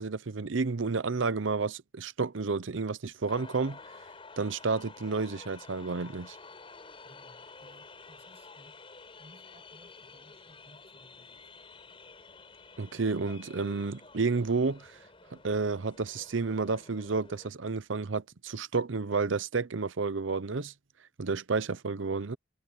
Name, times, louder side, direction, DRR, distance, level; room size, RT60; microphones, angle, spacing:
voice 1, 0.0-3.8 4.4-6.4 12.8-15.0 15.3-20.7 21.2-22.4, right 4 dB, 70° right, 0.7 m, -31 dB
sound 1, 3.3-17.5, left 3 dB, 25° left, 4.9 m, -51 dB
voice 2, 7.0-8.8 9.2-11.5, equal, 30° right, 7.6 m, -60 dB
head